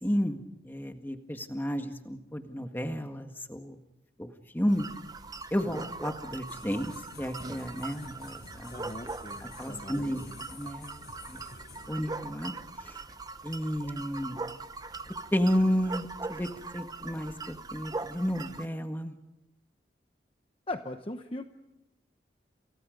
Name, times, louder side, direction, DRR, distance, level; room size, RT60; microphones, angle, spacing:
voice 1, 0.0-3.8 4.2-4.9 5.5-8.8 9.4-10.9 11.3-11.4 11.9-12.5 12.8-13.0 13.4-14.4 15.3-16.5 16.7-17.3 17.7-19.1, equal, 10° left, 6 dB, 1.8 m, -32 dB
sound 1, 4.7-18.6, right 3 dB, 20° right, 0.9 m, -41 dB
sound 2, 6.4-11.9, left 3 dB, 60° left, 5.4 m, -50 dB
voice 2, 8.7-10.4 20.7-21.4, left 2 dB, 30° left, 6 dB, 1.0 m, -40 dB
29.5 x 29.0 x 5.3 m, 0.89 s
head